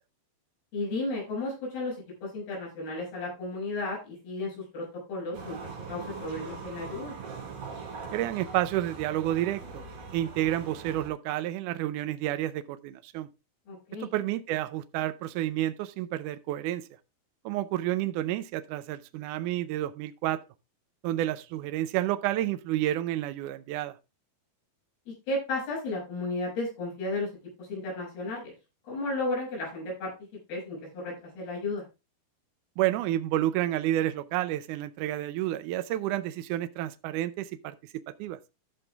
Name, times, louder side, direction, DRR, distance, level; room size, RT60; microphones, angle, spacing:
voice 1, 0.7-2.0 2.2-5.6 5.9-7.1 13.7-14.1 25.3-27.3 27.6-28.5 28.8-30.1 30.5-31.8, left 2 dB, 85° left, 8.6 m, -33 dB
sound 1, 5.3-11.1, right 5 dB, 70° right, 4.8 m, -41 dB
voice 2, 8.1-9.9 10.1-13.3 14.0-16.9 17.5-20.4 21.0-24.0 32.8-37.8 38.1-38.4, right 13 dB, 85° right, 1.8 m, -30 dB
14.0 x 5.5 x 3.4 m
omnidirectional pair, 4.3 m